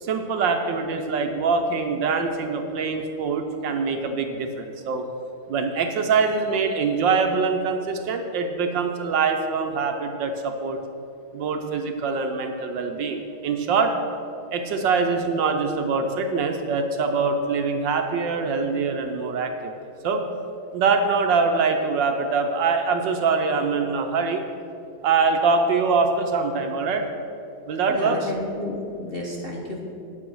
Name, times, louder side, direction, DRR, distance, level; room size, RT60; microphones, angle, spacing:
voice 1, 0.0-5.0 5.5-10.8 11.3-13.9 14.5-20.2 20.7-24.4 25.0-27.1 27.7-28.3, right 4 dB, 70° right, 5 dB, 1.3 m, -24 dB
voice 2, 27.9-29.8, left 1 dB, 40° left, -3 dB, 0.9 m, -31 dB
9.8 x 7.8 x 6.1 m, 2.7 s
omnidirectional pair, 2.3 m